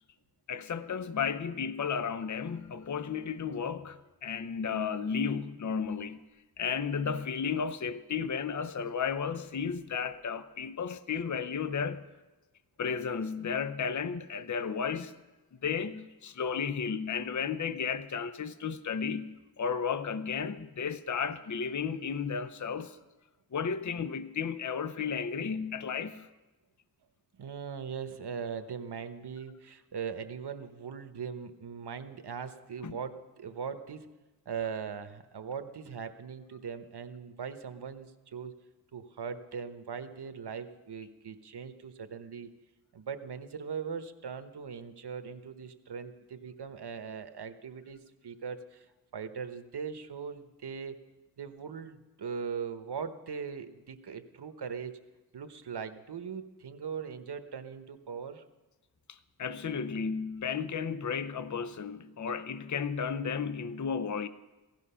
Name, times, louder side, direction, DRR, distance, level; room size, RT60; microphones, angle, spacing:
voice 1, 0.5-6.2 6.6-12.1 12.8-15.1 15.6-23.0 23.5-26.3 32.8-33.0 59.1-64.3, left 6 dB, 50° left, 0.7 m, -33 dB
voice 2, 27.3-34.1 34.4-38.5 38.9-42.5 42.9-48.9 49.1-51.0 51.4-54.9 55.3-58.4, right 6 dB, 85° right, 1.0 m, -40 dB
17.0 x 13.5 x 5.6 m
wide cardioid pair, 80°, 39 cm